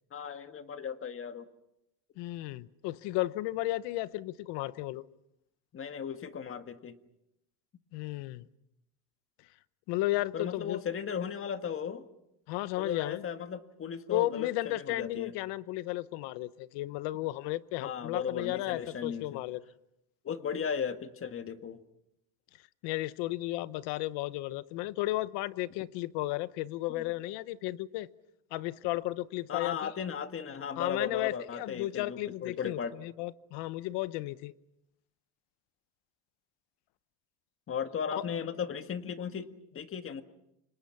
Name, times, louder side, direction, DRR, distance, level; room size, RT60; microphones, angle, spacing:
voice 1, 0.1-1.5 5.7-7.0 10.3-12.1 12.8-15.3 17.8-19.4 20.2-21.8 26.9-27.0 29.5-33.1 37.7-40.2, left 7 dB, 30° left, 9 dB, 1.7 m, -36 dB
voice 2, 2.2-5.0 7.9-8.5 9.9-10.8 12.5-13.2 14.1-19.6 22.8-28.1 28.5-29.9 30.8-34.5 38.1-38.2, left 17 dB, 85° left, 16 dB, 1.1 m, -34 dB
29.5 x 26.5 x 5.9 m, 0.83 s
cardioid pair, 140°, 40 cm